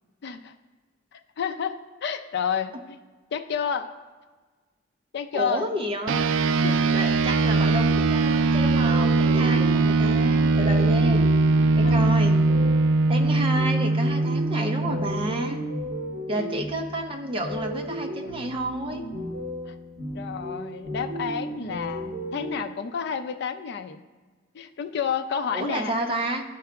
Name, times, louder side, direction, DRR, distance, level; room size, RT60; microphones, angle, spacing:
voice 1, 0.2-0.5 1.1-3.0 3.3-3.9 5.1-5.7 6.6-6.8 11.8-11.9 19.7-19.8 20.1-24.0 24.5-25.9, left 7 dB, 60° left, 8 dB, 0.4 m, -30 dB
voice 2, 5.3-6.2 6.9-11.3 11.8-12.3 13.1-15.6 16.3-19.0 25.5-26.4, right 1 dB, 30° right, 2 dB, 0.6 m, -30 dB
sound 1, 6.1-15.8, right 3 dB, 85° right, 0.3 m, -21 dB
sound 2, 8.8-22.5, equal, 65° right, 1.5 m, -34 dB
11.5 x 4.7 x 2.3 m, 1.4 s
head